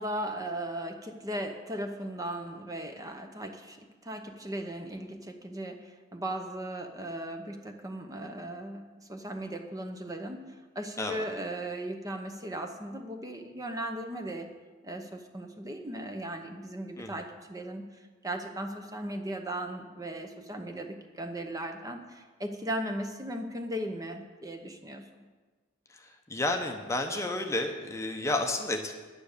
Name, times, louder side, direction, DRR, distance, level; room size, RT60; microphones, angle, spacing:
voice 1, 0.0-8.8 9.1-10.4 10.7-14.5 14.8-17.9 18.2-25.0, right 1 dB, 15° right, 5 dB, 0.8 m, -37 dB
voice 2, 26.3-28.9, left 2 dB, 15° left, 4 dB, 0.7 m, -31 dB
10.5 x 9.5 x 6.6 m, 1.4 s
head